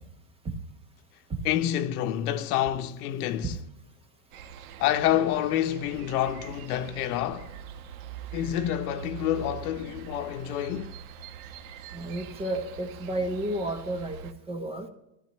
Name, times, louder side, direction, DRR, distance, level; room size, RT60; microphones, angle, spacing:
voice 1, 1.4-3.6 4.8-7.6 8.3-10.9, left 11 dB, 80° left, 1.0 m, -28 dB
sound 1, 4.3-14.3, right 7 dB, 60° right, 1.3 m, -43 dB
voice 2, 11.9-14.9, right 1 dB, 15° right, 0.9 m, -32 dB
21.0 x 14.5 x 3.1 m
supercardioid pair, 175°, 45 cm